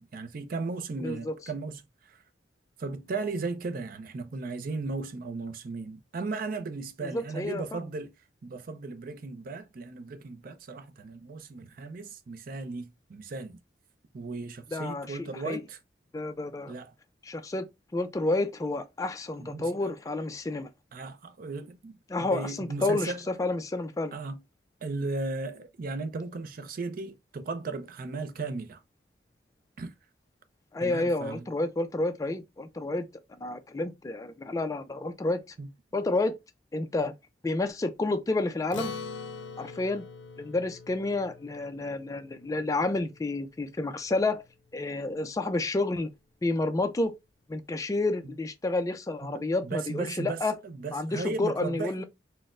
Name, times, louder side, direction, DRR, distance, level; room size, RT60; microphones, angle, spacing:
voice 1, 0.0-1.8 2.1-2.2 2.8-8.1 8.4-13.6 14.1-15.8 16.7-16.9 19.4-19.9 20.9-23.2 24.1-24.4 24.8-28.8 29.8-29.9 30.8-31.4 35.6-35.7 49.2-51.9, right 3 dB, 50° right, 0.4 m, -36 dB
voice 2, 1.0-1.3 7.0-7.8 14.7-15.6 16.1-16.7 17.2-17.6 17.9-20.7 22.1-24.2 30.7-33.1 33.4-35.4 35.9-36.3 36.7-37.1 37.4-38.9 39.6-40.0 40.4-44.4 44.7-46.1 46.4-47.1 47.5-50.5 50.9-52.0, left 2 dB, 20° left, 0.3 m, -30 dB
Acoustic guitar, 38.7-43.4, left 5 dB, 80° left, 0.5 m, -43 dB
4.1 x 2.0 x 2.4 m
head